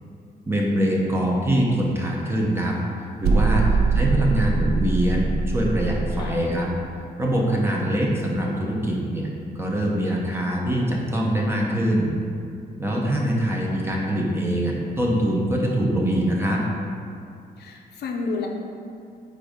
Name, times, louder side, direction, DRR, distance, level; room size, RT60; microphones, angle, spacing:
voice 1, 0.5-2.8 3.2-3.7 3.9-6.7 7.2-9.3 9.5-12.1 12.8-16.6, right 1 dB, 15° right, -2 dB, 0.8 m, -23 dB
sound 1, 3.2-6.3, right 4 dB, 75° right, 0.6 m, -22 dB
voice 2, 3.5-4.1 6.2-6.4 12.9-13.2 17.6-18.5, left 4 dB, 75° left, 1 dB, 0.7 m, -32 dB
8.1 x 2.7 x 5.1 m, 2.5 s
wide cardioid pair, 170°, 17 cm